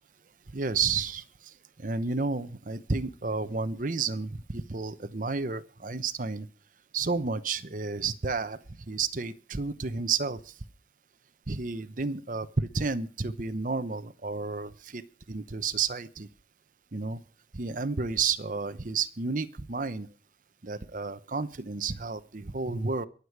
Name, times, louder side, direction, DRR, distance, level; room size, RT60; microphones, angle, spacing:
voice 1, 0.5-6.5 6.9-10.5 11.5-15.0 15.3-16.3 16.9-17.2 17.5-20.1 20.6-23.1, right 4 dB, 45° right, 12 dB, 0.8 m, -31 dB
22.5 x 8.2 x 4.7 m, 0.39 s
head